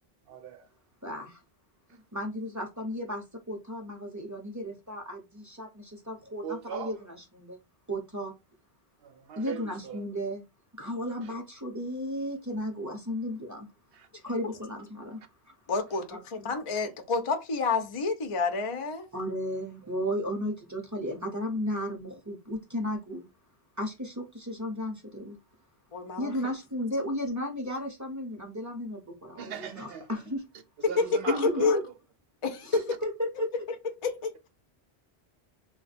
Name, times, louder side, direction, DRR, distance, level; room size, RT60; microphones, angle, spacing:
voice 1, 0.3-0.7 6.4-6.9 9.0-10.0 11.2-11.3 13.9-14.1 19.8-19.9 29.4-30.1 30.9-31.8 32.7-32.8, right 8 dB, 65° right, 0.7 m, -39 dB
voice 2, 1.0-1.4 1.9-7.6 7.9-8.3 9.4-10.4 10.8-13.7 14.2-15.2 16.1-16.2 19.1-23.3 23.8-25.4 26.2-30.4 31.3-31.8 33.0-33.3, equal, 20° right, 0.6 m, -34 dB
voice 3, 15.7-19.1 25.9-26.3 31.6-31.8 32.4-32.8 34.0-34.5, left 4 dB, 40° left, 0.5 m, -29 dB
2.8 x 2.2 x 4.1 m
omnidirectional pair, 1.1 m